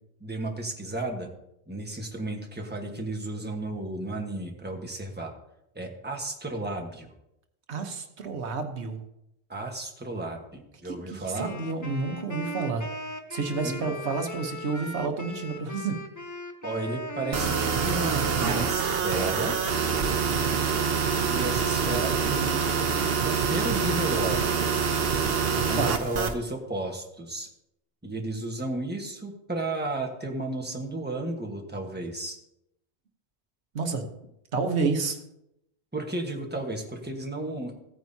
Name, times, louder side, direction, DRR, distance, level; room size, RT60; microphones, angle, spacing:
voice 1, 0.2-1.3 1.7-5.3 5.7-7.1 9.5-11.5 13.6-14.0 16.6-19.5 21.3-24.6 25.5-27.5 28.0-32.4 35.9-37.7, right 2 dB, 10° right, 1 dB, 1.3 m, -33 dB
voice 2, 7.7-9.0 10.8-12.8 13.3-16.0 25.8-26.0 33.7-34.1 34.5-35.2, right 4 dB, 85° right, 5 dB, 1.3 m, -30 dB
Wind instrument woodwind instrument, 11.3-19.5, equal, 20° left, 0.7 m, -39 dB
sound 1, 17.3-26.3, right 6 dB, 65° right, 1.1 m, -26 dB
15.5 x 9.0 x 2.8 m, 0.82 s
omnidirectional pair, 1.1 m